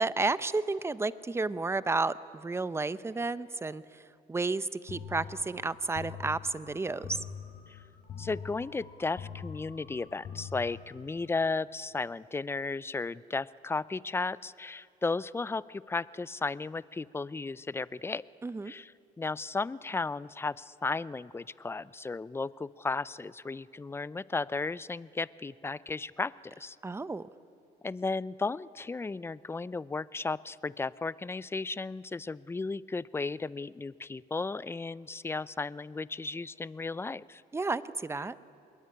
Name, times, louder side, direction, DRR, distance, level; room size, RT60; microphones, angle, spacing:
voice 1, 0.0-7.2 18.4-18.7 26.8-27.3 37.5-38.4, right 3 dB, 15° right, 15 dB, 0.8 m, -32 dB
sound 1, 4.9-11.3, left 7 dB, 55° left, 4.8 m, -44 dB
voice 2, 8.2-18.2 18.7-18.9 19.2-26.3 26.6-26.8 27.8-37.4, left 3 dB, 15° left, 19 dB, 0.5 m, -34 dB
25.5 x 21.5 x 9.7 m, 2.9 s
cardioid pair, 110°, 17 cm